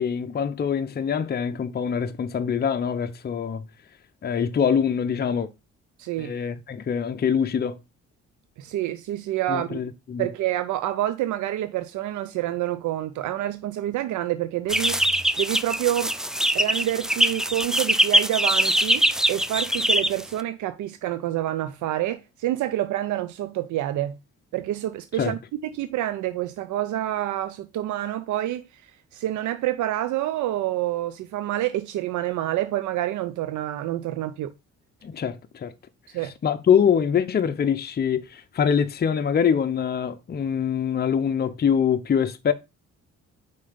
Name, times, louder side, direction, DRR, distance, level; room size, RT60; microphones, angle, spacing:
voice 1, 0.0-3.6 4.2-5.5 6.2-7.8 9.5-10.3 25.2-25.3 35.0-35.7 36.4-42.5, left 7 dB, 35° left, 0.6 m, -24 dB
voice 2, 6.0-6.3 8.6-9.8 10.2-16.1 16.5-24.2 24.5-34.5 36.1-36.3, right 13 dB, 75° right, 0.5 m, -28 dB
sound 1, 14.7-20.4, equal, ahead, 0.3 m, -22 dB
5.4 x 4.0 x 5.0 m
cardioid pair, 90°, 30 cm